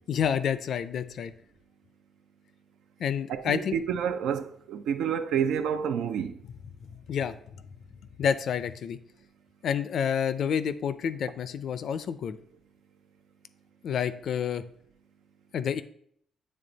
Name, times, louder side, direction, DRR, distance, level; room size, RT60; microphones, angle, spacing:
voice 1, 0.1-1.3 3.0-3.8 6.9-7.3 8.2-9.0 9.6-12.4 13.8-14.6 15.5-15.8, left 8 dB, 65° left, 0.4 m, -29 dB
voice 2, 3.3-6.4, right 8 dB, 85° right, 0.5 m, -29 dB
8.4 x 3.4 x 3.9 m
cardioid pair, 105°, 0 cm